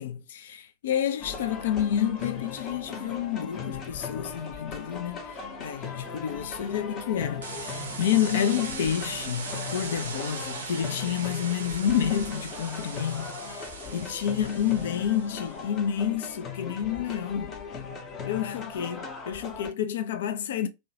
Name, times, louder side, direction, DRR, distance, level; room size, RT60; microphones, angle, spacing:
voice 1, 0.0-17.6 18.2-20.7, left 9 dB, 60° left, 0.3 m, -29 dB
sound 1, 1.2-19.7, left 5 dB, 30° left, 0.6 m, -39 dB
sound 2, 7.4-15.6, right 4 dB, 70° right, 0.5 m, -39 dB
2.6 x 2.1 x 2.6 m
figure-of-eight pair, 90°, 0 cm